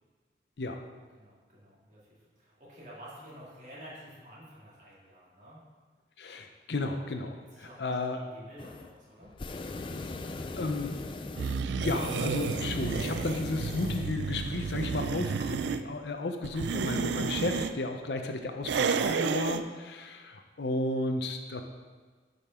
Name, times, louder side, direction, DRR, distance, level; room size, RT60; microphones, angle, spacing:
voice 1, 1.1-5.6 7.5-7.8 8.1-9.3 15.6-15.8, equal, 45° right, -7 dB, 2.5 m, -50 dB
voice 2, 6.2-8.2 10.6-11.0 11.6-21.6, left 2 dB, 75° left, 5 dB, 0.7 m, -33 dB
sound 1, 8.6-8.9 9.2-14.1, left 3 dB, 30° left, 0.3 m, -39 dB
sound 2, 11.4-15.8 16.4-17.7 18.6-19.6, right 5 dB, 80° right, 0.4 m, -31 dB
10.0 x 5.3 x 3.6 m, 1.4 s
head